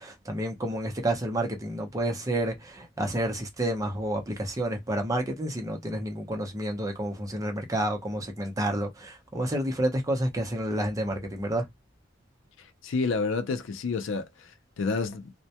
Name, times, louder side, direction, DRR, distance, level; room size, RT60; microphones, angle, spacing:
voice 1, 0.0-11.7, right 1 dB, 15° right, 0.6 m, -30 dB
voice 2, 12.8-14.5 14.8-15.3, left 4 dB, 70° left, 0.4 m, -29 dB
2.1 x 2.1 x 2.7 m
head